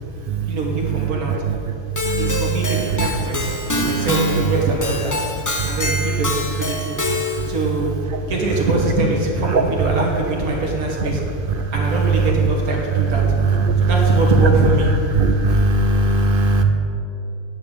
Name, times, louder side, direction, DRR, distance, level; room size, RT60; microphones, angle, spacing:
voice 1, 0.5-1.3 2.2-5.2 5.7-7.0 7.5-8.0 8.3-11.2 11.7-13.2 13.8-14.9, right 2 dB, 85° right, -2 dB, 1.8 m, -23 dB
Keyboard (musical), 2.0-7.6, left 2 dB, 25° left, 0.4 m, -25 dB
voice 2, 2.1-2.4 3.8-4.1 9.5-9.6 13.6-13.9 15.1-16.6, right 2 dB, 65° right, 6 dB, 0.5 m, -18 dB
9.5 x 5.5 x 8.1 m, 2.7 s
omnidirectional pair, 1.5 m